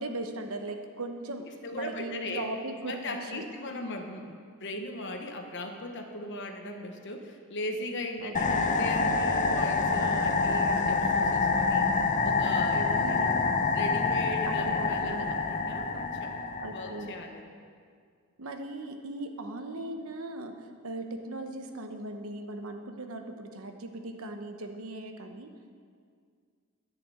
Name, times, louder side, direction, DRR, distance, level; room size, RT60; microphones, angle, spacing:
voice 1, 0.0-1.4 1.7-3.4 8.2-8.7 12.9-13.4 14.5-15.4 16.6-17.1 18.4-25.5, right 2 dB, 70° right, 5 dB, 1.0 m, -38 dB
voice 2, 1.4-2.5 2.9-11.9 12.2-13.4 13.7-16.3 16.7-17.4, left 1 dB, 55° left, 4 dB, 1.0 m, -38 dB
sound 1, 8.3-17.2, left 4 dB, 35° left, 0.7 m, -27 dB
11.0 x 6.9 x 8.2 m, 2.1 s
head